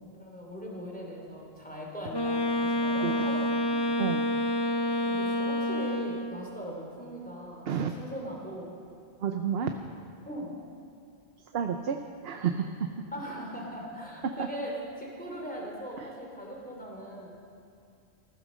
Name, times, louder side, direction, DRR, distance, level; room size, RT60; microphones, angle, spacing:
voice 1, 0.2-3.8 5.1-8.7 10.2-10.6 13.1-17.3, equal, 10° left, -2 dB, 3.2 m, -40 dB
Wind instrument woodwind instrument, 2.1-6.4, equal, 25° left, 0.6 m, -28 dB
voice 2, 9.2-9.7 11.5-12.0 12.2-12.9 14.2-14.3, right 7 dB, 65° right, 6 dB, 0.9 m, -30 dB
15.5 x 14.0 x 6.4 m, 2.4 s
omnidirectional pair, 1.1 m